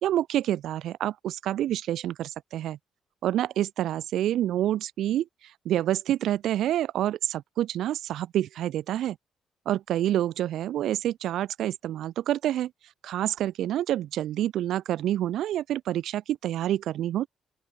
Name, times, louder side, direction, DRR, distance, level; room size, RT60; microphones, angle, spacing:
voice 1, 0.0-2.8 3.2-9.2 9.7-12.7 13.0-17.3, right 12 dB, 80° right, 0.8 m, -28 dB
open air
cardioid pair, 90°, 0 cm